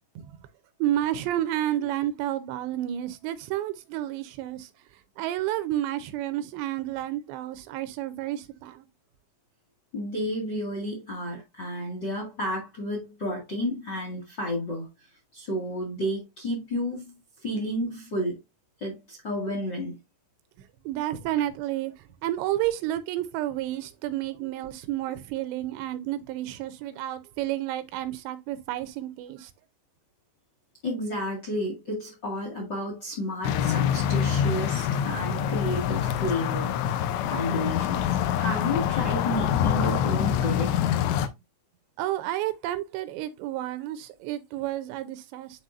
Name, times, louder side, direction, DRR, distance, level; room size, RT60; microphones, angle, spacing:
voice 1, 0.8-4.7 5.2-8.8 20.9-21.9 22.2-29.5 42.0-45.6, right 13 dB, 85° right, 2.8 m, -30 dB
voice 2, 9.9-14.9 15.3-17.1 17.4-18.4 18.8-20.0 30.8-37.0 37.3-40.8, equal, 40° left, 1.6 m, -31 dB
sound 1, 33.4-41.3, left 9 dB, 80° left, 2.9 m, -25 dB
10.0 x 4.1 x 2.6 m
omnidirectional pair, 5.1 m